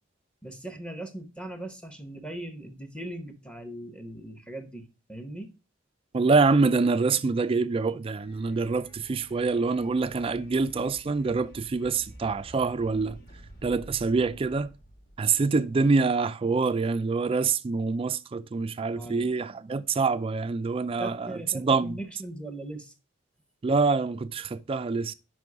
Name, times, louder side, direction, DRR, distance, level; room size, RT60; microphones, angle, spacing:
voice 1, 0.4-5.5 19.0-19.3 21.0-22.9, right 1 dB, 5° left, 0.8 m, -39 dB
voice 2, 6.1-13.2 13.6-14.7 15.2-22.0 23.6-25.1, right 4 dB, 30° right, 0.3 m, -25 dB
sound 1, 8.2-16.1, right 1 dB, 50° left, 1.3 m, -50 dB
5.3 x 5.3 x 4.7 m
head